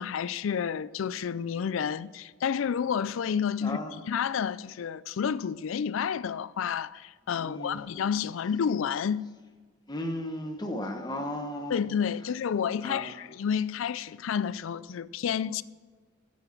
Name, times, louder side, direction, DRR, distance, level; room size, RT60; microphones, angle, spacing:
voice 1, 0.0-3.8 4.1-9.3 11.7-15.6, left 7 dB, 75° left, 0.4 m, -30 dB
voice 2, 3.6-3.9 7.4-7.9 9.9-11.8 12.8-13.1, left 1 dB, 20° left, 1.2 m, -35 dB
11.5 x 7.4 x 5.9 m
head